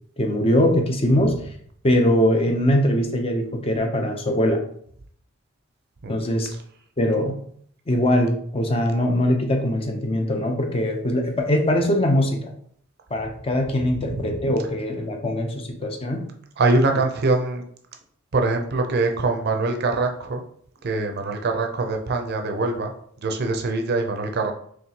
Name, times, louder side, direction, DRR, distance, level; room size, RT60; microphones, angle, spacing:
voice 1, 0.2-1.4 1.8-4.6 6.1-6.5 7.0-7.4 7.9-12.5 13.1-16.2, left 1 dB, 30° left, 3 dB, 0.6 m, -22 dB
voice 2, 13.9-14.4 16.6-17.6 18.3-20.4 20.8-22.9 23.2-24.5, right 3 dB, 50° right, 4 dB, 0.5 m, -23 dB
4.4 x 3.1 x 2.8 m, 0.63 s
head